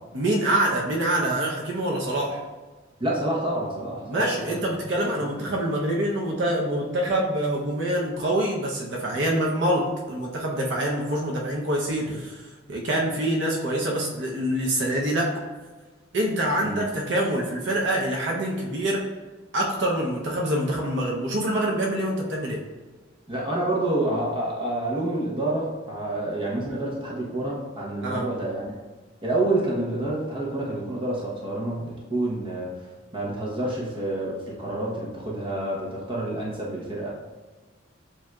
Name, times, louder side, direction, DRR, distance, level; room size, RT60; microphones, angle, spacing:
voice 1, 0.1-2.4 4.1-15.3 16.1-19.0 19.5-22.6 28.0-28.3, right 1 dB, 60° right, -2 dB, 0.6 m, -25 dB
voice 2, 3.0-4.6 16.6-16.9 23.3-28.7 29.2-32.7 33.1-37.1, right 1 dB, 25° right, -4 dB, 0.8 m, -28 dB
7.3 x 2.6 x 2.3 m, 1.3 s
head